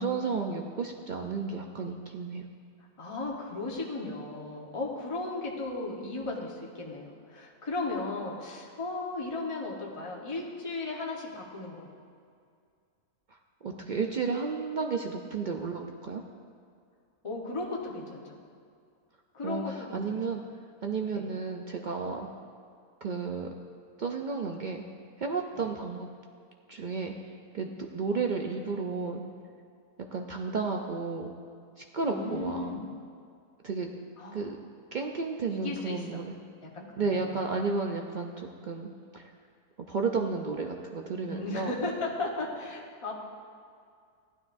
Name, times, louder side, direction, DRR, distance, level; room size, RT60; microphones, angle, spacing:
voice 1, 0.0-2.5 13.3-16.2 19.4-20.4 20.8-22.3 23.0-23.5 24.0-24.8 25.2-26.1 26.7-27.1 27.5-29.2 30.0-31.3 31.8-32.8 33.6-33.9 34.3-34.6 34.9-36.4 37.0-39.3 39.9-41.7, right 4 dB, 75° right, 2 dB, 0.4 m, -32 dB
voice 2, 3.0-11.9 17.2-18.4 19.3-20.1 21.1-21.2 25.6-25.7 32.1-32.9 34.2-34.4 35.5-36.2 36.6-37.3 41.3-43.1, left 2 dB, 20° left, -2 dB, 1.1 m, -36 dB
15.5 x 11.5 x 2.6 m, 2.3 s
omnidirectional pair, 1.6 m